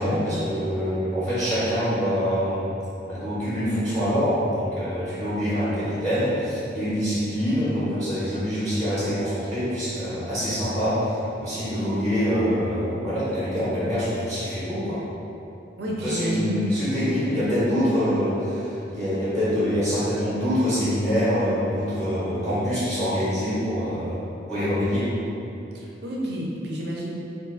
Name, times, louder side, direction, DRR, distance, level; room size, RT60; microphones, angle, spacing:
voice 1, 0.0-2.7 3.1-15.0 16.0-24.2 24.5-25.1, equal, ahead, -13 dB, 0.7 m, -25 dB
voice 2, 15.8-16.6 25.7-27.1, right 1 dB, 60° right, -3 dB, 0.5 m, -29 dB
2.5 x 2.4 x 3.7 m, 2.8 s
head